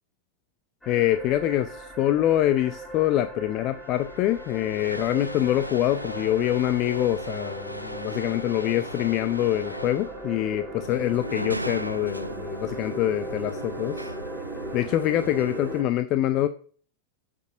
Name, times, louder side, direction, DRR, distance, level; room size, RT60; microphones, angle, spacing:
sound 1, 0.8-15.8, right 1 dB, 5° left, 2.8 m, -38 dB
voice 1, 0.9-10.6 10.9-14.1 14.7-16.5, left 13 dB, 40° left, 12 dB, 0.5 m, -25 dB
sound 2, 3.3-3.4 3.6-11.8, equal, 90° left, 0.8 m, -39 dB
sound 3, 10.8-15.8, right 1 dB, 85° right, 0.5 m, -37 dB
8.2 x 6.2 x 5.2 m, 0.44 s
figure-of-eight pair, 90°, 0 cm